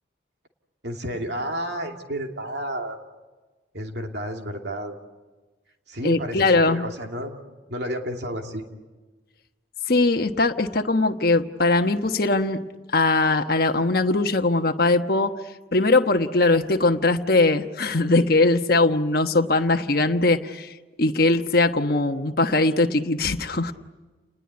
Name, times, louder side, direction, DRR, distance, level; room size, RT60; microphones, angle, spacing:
voice 1, 0.8-3.0 3.7-4.9 5.9-7.3 7.7-8.6, equal, 60° right, 3 dB, 2.8 m, -31 dB
voice 2, 6.0-6.9 9.9-12.6 12.9-15.3 15.7-23.7, left 2 dB, 50° left, 5 dB, 1.2 m, -21 dB
30.0 x 20.0 x 9.8 m, 1.2 s
head